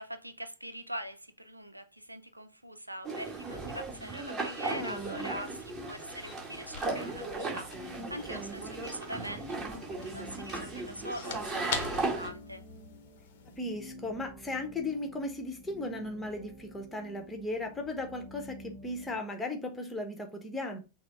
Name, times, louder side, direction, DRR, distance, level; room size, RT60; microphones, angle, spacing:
voice 1, 0.0-12.6, equal, 85° right, 0.4 m, -43 dB
sound 1, 3.0-12.3, right 3 dB, 20° right, 1.9 m, -37 dB
sound 2, 4.6-13.6, left 7 dB, 55° left, 0.8 m, -45 dB
voice 2, 4.7-5.3 8.0-8.6 13.6-20.8, left 2 dB, 10° left, 1.0 m, -37 dB
sound 3, 7.7-19.2, equal, 40° right, 1.1 m, -51 dB
6.0 x 2.1 x 4.3 m
figure-of-eight pair, 90°, 0 cm